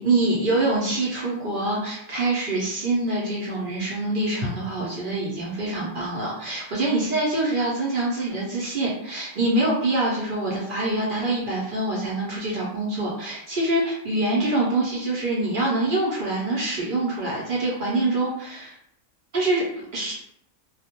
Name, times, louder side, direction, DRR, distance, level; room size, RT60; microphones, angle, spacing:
voice 1, 0.0-18.7 19.3-20.1, right 2 dB, 55° right, -5 dB, 0.6 m, -25 dB
2.3 x 2.1 x 2.8 m, 0.72 s
omnidirectional pair, 1.4 m